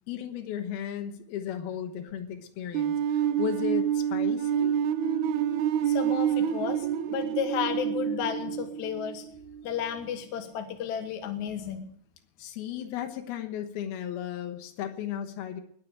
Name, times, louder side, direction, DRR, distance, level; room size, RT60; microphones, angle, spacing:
voice 1, 0.1-4.7 12.4-15.6, left 9 dB, 85° left, 5 dB, 3.2 m, -35 dB
sound 1, 2.7-9.6, right 9 dB, 75° right, 1.8 m, -28 dB
voice 2, 5.9-9.2 9.6-11.9, left 8 dB, 60° left, 6 dB, 2.3 m, -33 dB
20.5 x 7.6 x 8.9 m, 0.68 s
omnidirectional pair, 4.3 m